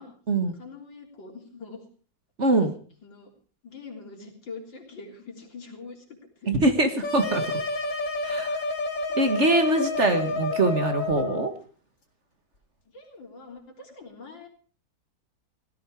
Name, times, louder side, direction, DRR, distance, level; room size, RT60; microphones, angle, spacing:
voice 1, 0.5-1.8 3.0-3.3 3.6-6.6 12.9-14.5, left 4 dB, 90° left, 1 dB, 4.3 m, -44 dB
voice 2, 2.4-2.7 6.5-7.6 8.2-8.6 9.1-11.5, right 2 dB, 40° right, 7 dB, 1.9 m, -23 dB
sound 1, 7.0-11.5, left 2 dB, 45° left, 2.6 m, -29 dB
17.0 x 14.5 x 4.8 m, 0.42 s
omnidirectional pair, 2.0 m